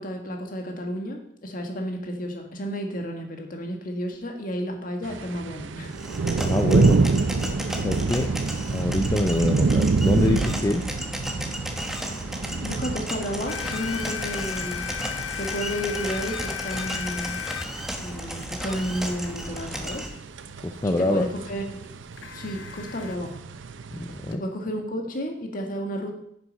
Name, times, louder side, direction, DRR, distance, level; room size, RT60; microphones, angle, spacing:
voice 1, 0.0-5.9 12.6-14.8 15.4-17.4 18.0-20.1 20.8-21.8 22.3-23.3 24.3-26.1, equal, 45° left, 3 dB, 1.6 m, -32 dB
sound 1, 5.0-24.3, right 4 dB, 80° right, 0.6 m, -28 dB
sound 2, 5.9-20.1, equal, ahead, 1.0 m, -34 dB
voice 2, 6.4-7.0 7.3-7.5 7.8-8.3 8.7-10.9 20.6-21.2 23.9-24.4, left 2 dB, 15° left, 5 dB, 0.4 m, -25 dB
sound 3, 13.5-19.4 22.2-23.2, left 10 dB, 80° left, 0.5 m, -36 dB
9.4 x 6.9 x 5.3 m, 0.74 s
head